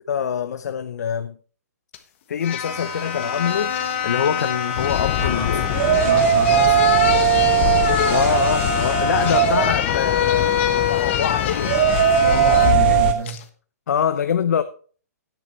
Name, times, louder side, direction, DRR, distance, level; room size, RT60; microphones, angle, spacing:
voice 1, 0.1-1.4 2.3-3.7 4.0-5.7 8.1-11.8 13.9-14.6, left 8 dB, 75° left, 0.7 m, -24 dB
sound 1, 1.9-2.0 2.4-12.8 13.3-13.4, left 9 dB, 45° left, 1.3 m, -25 dB
sound 2, 2.7-13.1, right 10 dB, 40° right, 2.0 m, -21 dB
sound 3, 4.8-13.1, left 13 dB, 30° left, 0.5 m, -26 dB
voice 2, 5.2-7.6 12.2-13.4, right 6 dB, 75° right, 2.9 m, -30 dB
11.5 x 10.0 x 3.2 m
hypercardioid pair, 160°, 9 cm